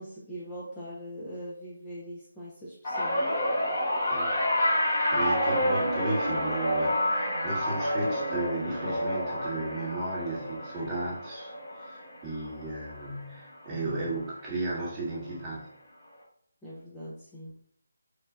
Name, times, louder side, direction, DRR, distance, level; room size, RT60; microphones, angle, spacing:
voice 1, 0.0-3.3 16.6-17.5, equal, 5° left, -9 dB, 0.4 m, -41 dB
sound 1, 2.8-13.3 13.6-14.0 15.2-15.3, equal, 40° left, 1.1 m, -29 dB
voice 2, 4.6-11.5 11.8-15.7, right 2 dB, 15° right, -6 dB, 0.8 m, -34 dB
3.3 x 2.1 x 2.3 m, 0.66 s
figure-of-eight pair, 155°, 0 cm